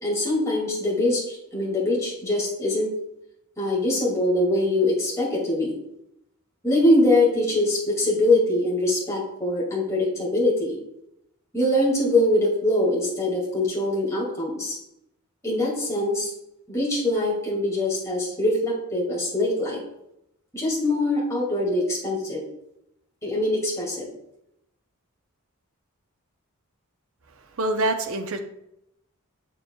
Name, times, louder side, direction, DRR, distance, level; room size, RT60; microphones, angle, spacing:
voice 1, 0.0-2.9 3.6-5.7 6.6-10.8 11.5-14.8 15.4-16.3 16.7-19.8 20.5-22.4 23.2-24.1, left 1 dB, 15° left, -5 dB, 2.3 m, -23 dB
voice 2, 27.6-28.4, right 2 dB, 65° right, 6 dB, 0.7 m, -25 dB
7.6 x 6.9 x 2.3 m, 0.82 s
head